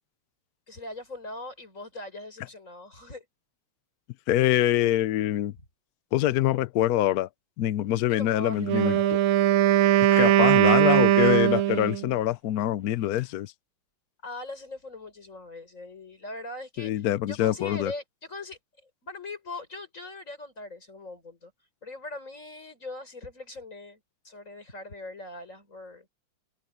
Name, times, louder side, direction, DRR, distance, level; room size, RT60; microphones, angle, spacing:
voice 1, 0.7-3.2 8.1-9.2 9.9-10.6 14.2-16.9 17.3-18.6 19.0-21.5 21.8-24.0 24.2-26.1, left 2 dB, 35° left, 5.7 m, -41 dB
voice 2, 4.3-5.5 6.1-7.3 7.6-8.9 10.1-13.5 16.8-17.9, left 13 dB, 75° left, 0.8 m, -25 dB
Wind instrument woodwind instrument, 8.6-12.1, right 13 dB, 80° right, 1.5 m, -20 dB
omnidirectional pair, 2.3 m